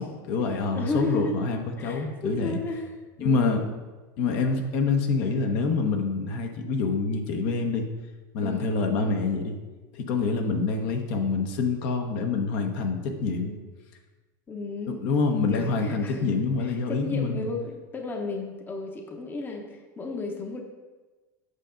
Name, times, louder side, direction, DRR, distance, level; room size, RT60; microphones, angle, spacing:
voice 1, 0.0-2.6 3.2-3.6 4.2-7.9 8.3-9.6 9.9-13.5 14.9-17.4, left 4 dB, 60° left, 4 dB, 1.1 m, -26 dB
voice 2, 0.7-1.4 1.8-3.7 8.4-8.7 13.3-13.6 14.5-15.0 15.5-20.6, left 2 dB, 20° left, 3 dB, 0.8 m, -34 dB
8.1 x 5.7 x 3.8 m, 1.2 s
supercardioid pair, 130°, 10 cm